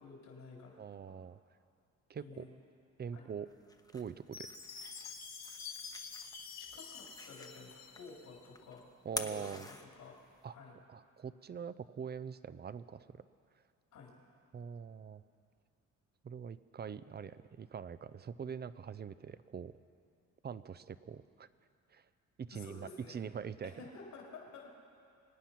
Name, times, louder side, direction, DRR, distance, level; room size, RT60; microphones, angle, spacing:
voice 1, 0.0-1.1 2.2-2.5 3.1-3.3 5.5-5.6 6.6-8.8 9.2-10.1 10.5-10.7 13.9-14.1 22.5-23.2 23.6-24.7, left 4 dB, 75° left, -2 dB, 3.7 m, -52 dB
voice 2, 0.8-1.4 2.1-2.5 3.0-3.5 3.9-4.5 9.0-9.7 10.4-10.5 10.9-13.1 14.5-15.2 16.2-19.7 20.4-21.5 21.9-22.1 22.4-23.7, right 7 dB, 35° right, 15 dB, 0.6 m, -43 dB
sound 1, 3.5-10.4, left 2 dB, 10° left, 1.0 m, -48 dB
Chime, 4.3-8.5, left 5 dB, 60° left, 2.3 m, -48 dB
24.5 x 9.1 x 5.9 m, 2.4 s
cardioid pair, 90°, 30 cm